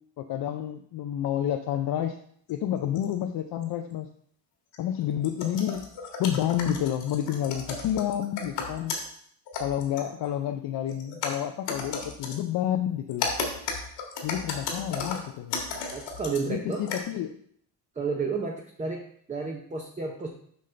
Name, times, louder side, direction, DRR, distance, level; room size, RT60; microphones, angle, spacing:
voice 1, 0.2-2.2 2.5-4.1 4.8-5.9 6.2-8.9 9.6-13.3 14.2-15.6 16.5-17.4, left 10 dB, 60° left, 6 dB, 0.6 m, -29 dB
sound 1, 2.5-2.6 2.9-3.1 3.5-3.6 4.7-9.1 9.5-10.4 10.9-12.4 13.1-16.4 16.7-17.0, left 4 dB, 75° left, 1.7 m, -34 dB
voice 2, 15.9-16.9 18.0-20.3, right 4 dB, 15° right, 0 dB, 0.7 m, -32 dB
7.6 x 5.4 x 3.3 m, 0.63 s
cardioid pair, 120°, 43 cm